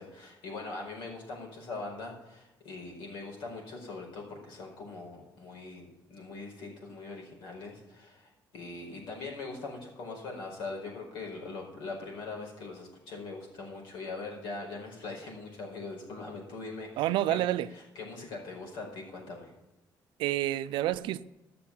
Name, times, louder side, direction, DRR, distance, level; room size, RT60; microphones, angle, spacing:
voice 1, 0.0-19.5, left 3 dB, 85° left, 4.8 m, -42 dB
voice 2, 17.0-17.7 20.2-21.2, right 14 dB, 85° right, 0.5 m, -28 dB
14.0 x 6.8 x 7.3 m
cardioid pair, 130°, 8 cm